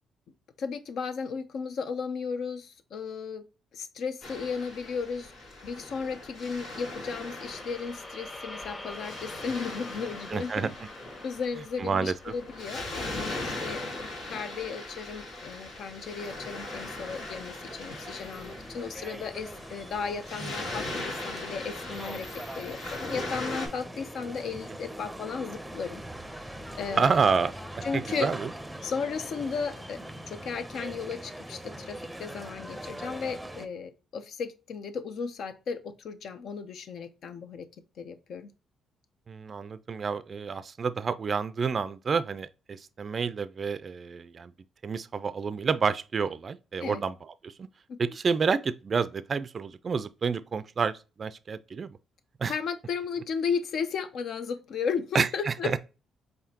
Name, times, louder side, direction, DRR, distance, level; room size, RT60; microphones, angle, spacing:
voice 1, 0.6-3.4 3.7-5.3 5.6-10.7 11.2-13.8 14.3-22.3 22.6-26.0 26.4-27.1 27.8-28.3 28.8-30.0 30.3-37.7 38.0-38.5 46.8-47.0 47.9-48.0 52.5-55.8, left 5 dB, 65° left, 0.6 m, -35 dB
Waves surf, 4.2-23.7, left 2 dB, 85° left, 2.1 m, -39 dB
sound 1, 6.7-14.9, left 2 dB, 25° left, 0.9 m, -47 dB
voice 2, 10.3-10.7 11.8-12.3 20.4-20.5 26.9-28.5 39.3-44.5 44.8-47.7 48.0-51.9 52.4-52.5 55.1-55.8, right 5 dB, 40° right, 0.3 m, -29 dB
sound 2, 15.3-33.7, right 1 dB, 5° right, 0.6 m, -42 dB
4.9 x 3.2 x 2.8 m
cardioid pair, 90°, 0 cm